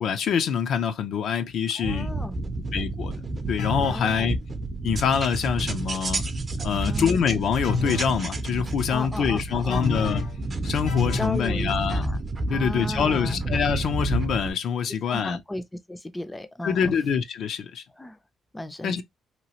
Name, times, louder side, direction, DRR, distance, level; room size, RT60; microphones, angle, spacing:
voice 1, 0.0-2.1 2.7-3.1 3.5-4.4 4.8-6.2 6.6-10.2 10.6-12.1 12.5-15.4 16.6-17.8 18.8-19.0, left 7 dB, 70° left, 0.5 m, -25 dB
voice 2, 1.8-2.4 3.9-4.4 6.6-7.2 8.9-10.0 11.1-12.2 12.5-13.4 15.1-16.9 17.9-18.2 18.5-19.0, left 1 dB, 15° left, 0.4 m, -35 dB
sound 1, 1.8-14.5, right 2 dB, 35° right, 0.6 m, -30 dB
sound 2, 3.6-4.1 7.6-8.2 9.7-10.4 10.9-11.4, left 4 dB, 85° left, 0.9 m, -29 dB
2.9 x 2.3 x 2.9 m
cardioid pair, 90°, 0 cm